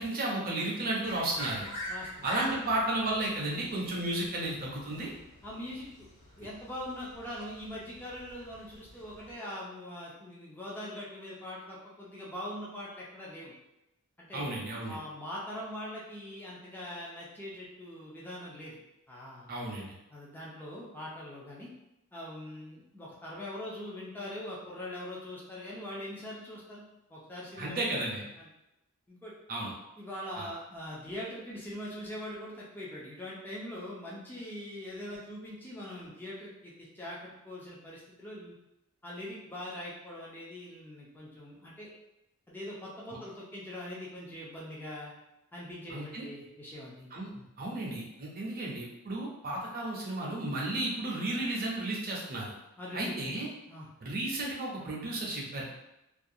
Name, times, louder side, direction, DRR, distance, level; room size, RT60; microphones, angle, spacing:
voice 1, 0.0-1.7 2.2-5.1 14.3-15.0 19.5-19.9 27.6-28.3 29.5-29.7 30.4-30.5 43.1-43.2 45.9-46.3 47.1-47.3 47.6-52.5 52.9-53.5 54.0-55.6, right 2 dB, 40° right, -3 dB, 0.6 m, -33 dB
sound 1, 1.0-9.3, equal, 60° left, 1.0 m, -46 dB
voice 2, 1.9-2.3 5.4-6.1 6.4-13.5 14.2-14.5 14.9-18.8 19.1-19.5 20.1-21.7 22.1-26.8 27.1-27.8 28.4-28.5 29.1-29.3 30.0-38.6 39.0-41.9 42.5-45.1 45.5-47.1 47.3-47.4 52.8-53.1 53.7-53.9, left 1 dB, 10° left, -6 dB, 0.4 m, -42 dB
2.4 x 2.2 x 2.6 m, 0.91 s
head